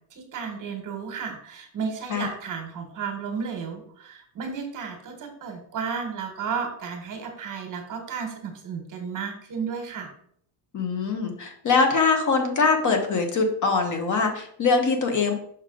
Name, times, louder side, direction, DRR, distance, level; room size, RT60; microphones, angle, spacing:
voice 1, 0.1-10.1, right 6 dB, 40° right, 5 dB, 1.4 m, -33 dB
voice 2, 10.7-15.3, left 4 dB, 40° left, 4 dB, 1.2 m, -23 dB
6.2 x 5.2 x 3.8 m, 0.63 s
cardioid pair, 155°, 46 cm